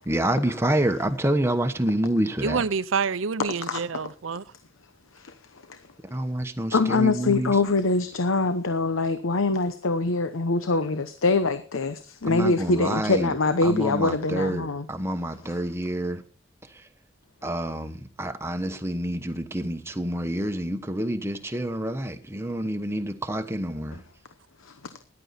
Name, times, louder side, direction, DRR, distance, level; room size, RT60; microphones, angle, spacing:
voice 1, 0.0-2.6 6.1-7.6 12.2-13.3 13.6-16.2 16.7-16.9 17.4-24.0, right 1 dB, 10° right, 1.1 m, -28 dB
voice 2, 2.4-4.4, right 5 dB, 80° right, 0.7 m, -27 dB
voice 3, 6.7-14.8 24.6-24.8, left 3 dB, 85° left, 0.9 m, -24 dB
14.5 x 11.0 x 4.2 m
head